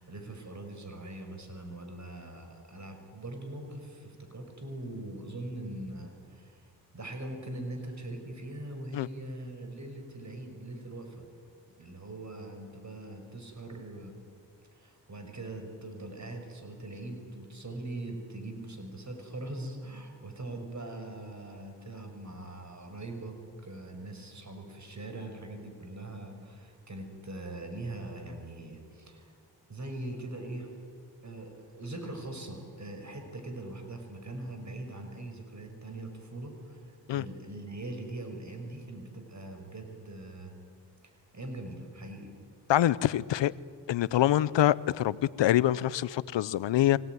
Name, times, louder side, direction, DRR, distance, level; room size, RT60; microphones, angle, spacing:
voice 1, 0.0-11.3 11.8-14.1 14.7-29.4 29.7-30.7 31.2-40.5 41.3-42.3, right 2 dB, 40° right, 5.7 m, -42 dB
voice 2, 42.7-43.5 43.9-47.0, left 12 dB, 90° left, 0.7 m, -25 dB
25.0 x 18.0 x 9.5 m
cardioid pair, 55°, 43 cm